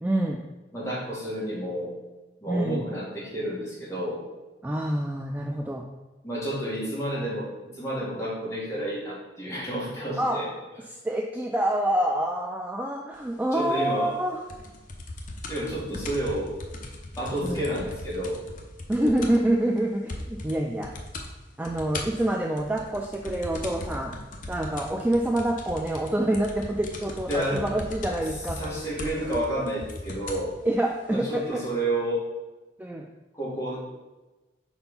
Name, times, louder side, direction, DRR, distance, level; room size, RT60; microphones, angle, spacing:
voice 1, 0.0-0.4 2.5-2.8 4.6-5.8 10.2-10.4 11.0-14.4 17.4-17.6 18.9-20.9 21.6-24.1 24.5-28.6 30.7-31.6 32.8-33.1, right 1 dB, 10° right, 1 dB, 0.3 m, -26 dB
voice 2, 0.7-1.9 2.4-4.2 6.2-7.5 7.7-10.5 13.5-14.2 15.5-16.5 17.2-18.4 27.3-27.6 28.6-30.5 31.1-32.3 33.3-33.8, right 1 dB, 15° left, -7 dB, 2.0 m, -30 dB
sound 1, 14.5-19.5 19.8-19.9 20.1-20.6 20.8-21.3 21.6-30.5 31.3-31.4, left 2 dB, 45° left, 0.7 m, -38 dB
4.4 x 4.3 x 5.5 m, 1.1 s
head